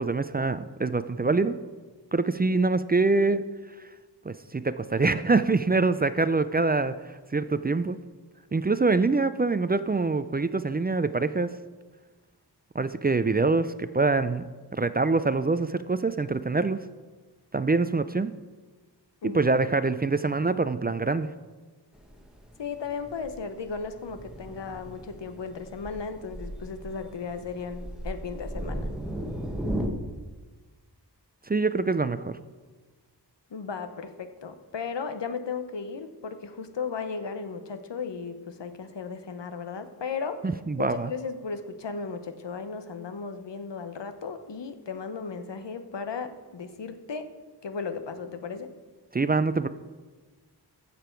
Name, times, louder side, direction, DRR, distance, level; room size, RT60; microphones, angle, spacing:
voice 1, 0.0-1.6 2.1-3.4 4.2-8.0 8.5-11.5 12.7-14.4 14.7-16.8 17.5-18.3 19.2-21.3 31.5-32.4 40.4-41.1 49.1-49.7, right 3 dB, 25° right, 13 dB, 0.3 m, -25 dB
Thunder, 21.9-29.9, right 1 dB, ahead, 1.2 m, -36 dB
voice 2, 22.6-28.9 33.5-40.4 40.8-47.3 47.6-48.7, left 5 dB, 85° left, 9 dB, 0.9 m, -35 dB
14.5 x 6.8 x 4.5 m, 1.3 s
wide cardioid pair, 65°, 42 cm